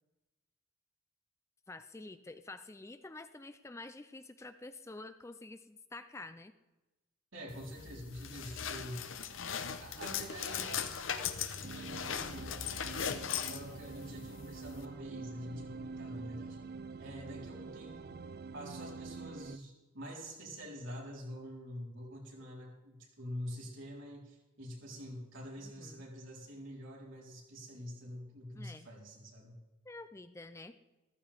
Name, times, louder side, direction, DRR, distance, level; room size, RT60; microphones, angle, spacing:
voice 1, 1.7-6.5 25.6-26.1 28.5-28.9 29.8-30.7, left 2 dB, 15° left, 11 dB, 0.4 m, -48 dB
voice 2, 7.3-9.1 9.8-12.5 13.4-16.6 17.0-18.2 18.5-29.6, equal, 75° right, -3 dB, 4.1 m, -46 dB
sound 1, 7.5-14.9, left 7 dB, 75° left, 0.9 m, -39 dB
sound 2, 11.6-19.6, right 4 dB, 50° right, 0.4 m, -46 dB
14.5 x 14.5 x 3.5 m, 1.1 s
head